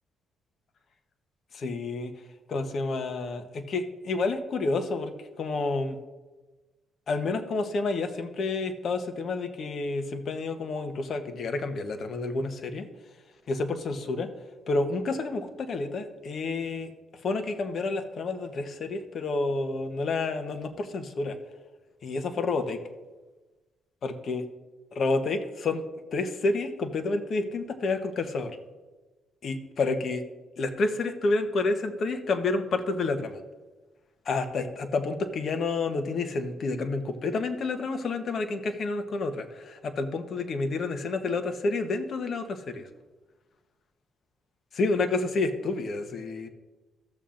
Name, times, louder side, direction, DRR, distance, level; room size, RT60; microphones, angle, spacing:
voice 1, 1.5-2.1 2.5-6.0 7.1-12.9 13.5-14.3 14.7-16.9 17.2-21.4 22.0-22.8 24.0-24.4 24.9-25.8 26.1-28.6 29.4-30.2 30.6-33.4 34.3-42.8 44.7-46.5, left 3 dB, 55° left, 8 dB, 1.0 m, -29 dB
14.5 x 7.1 x 2.6 m, 1.2 s
cardioid pair, 90°, 0 cm